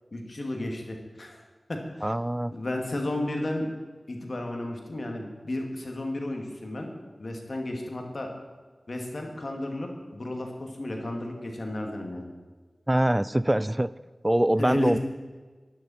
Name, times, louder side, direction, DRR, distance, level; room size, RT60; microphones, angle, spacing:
voice 1, 0.1-1.4 1.7-2.1 2.5-3.7 4.1-6.9 7.2-8.3 8.9-12.3 14.6-15.0, left 1 dB, 65° left, 2 dB, 2.3 m, -33 dB
voice 2, 2.0-2.5 12.9-13.9 14.2-15.0, right 1 dB, 20° right, 17 dB, 0.3 m, -23 dB
13.0 x 10.5 x 4.4 m, 1.4 s
cardioid pair, 40°, 0 cm